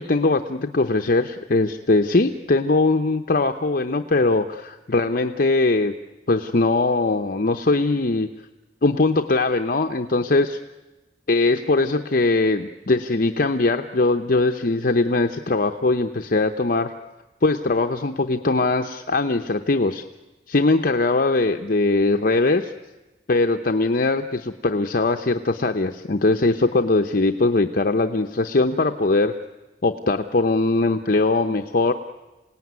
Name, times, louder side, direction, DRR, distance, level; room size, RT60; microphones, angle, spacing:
voice 1, 0.0-5.9 6.3-8.3 8.8-10.6 11.3-16.9 17.4-20.0 20.5-22.7 23.3-29.3 29.8-31.9, left 3 dB, 55° left, 6 dB, 0.8 m, -21 dB
27.0 x 18.0 x 9.5 m, 1.1 s
head